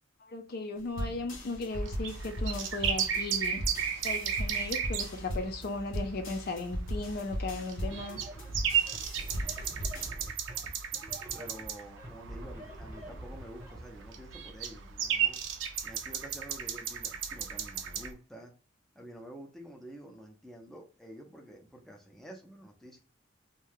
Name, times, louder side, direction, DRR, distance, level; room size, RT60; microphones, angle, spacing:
voice 1, 0.2-3.6 3.9-8.2, left 3 dB, 50° left, 0.4 m, -36 dB
sound 1, 1.0-10.1, equal, 75° left, 0.8 m, -37 dB
sound 2, 1.7-18.1, right 8 dB, 65° right, 0.4 m, -35 dB
sound 3, 7.8-13.8, equal, 15° right, 0.9 m, -46 dB
voice 2, 11.3-15.4 15.8-18.5 18.9-23.0, equal, ahead, 0.5 m, -49 dB
2.6 x 2.2 x 3.4 m
head